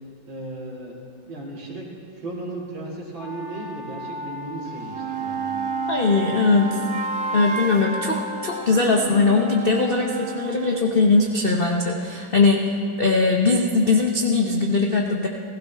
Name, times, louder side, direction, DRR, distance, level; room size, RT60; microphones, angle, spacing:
voice 1, 0.3-1.0 1.2-1.9 2.2-5.6, right 2 dB, 85° right, -3 dB, 2.9 m, -35 dB
sound 1, 3.2-8.7, left 3 dB, 25° left, 1.5 m, -37 dB
sound 2, 4.7-10.9, right 5 dB, 55° right, 1.1 m, -31 dB
voice 2, 5.9-6.8 7.3-15.3, left 3 dB, 60° left, 1 dB, 0.5 m, -20 dB
16.0 x 15.5 x 3.4 m, 2.3 s
omnidirectional pair, 2.1 m